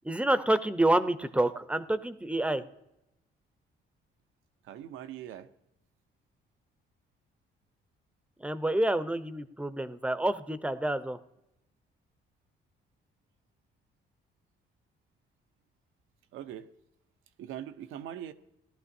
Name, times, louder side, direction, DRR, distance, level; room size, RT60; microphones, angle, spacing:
voice 1, 0.0-2.6 8.4-11.2, right 1 dB, 5° right, 12 dB, 0.6 m, -28 dB
voice 2, 4.6-5.5 16.3-16.7 17.4-18.3, right 11 dB, 90° right, 10 dB, 0.7 m, -41 dB
17.5 x 12.0 x 2.7 m, 0.85 s
cardioid pair, 90°, 20 cm